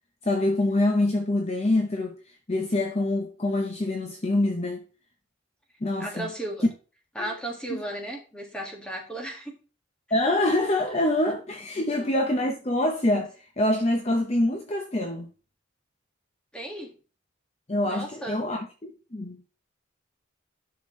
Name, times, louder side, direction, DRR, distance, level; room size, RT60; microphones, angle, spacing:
voice 1, 0.2-2.2 2.5-4.8 5.8-6.3 7.2-7.3 7.7-7.8 10.1-15.3 17.7-19.4, left 1 dB, 30° left, 0.8 m, -25 dB
voice 2, 6.0-6.6 7.2-9.5 11.7-12.1 16.5-16.9 17.9-18.4, right 1 dB, 5° left, 1.9 m, -35 dB
10.5 x 5.9 x 3.2 m
head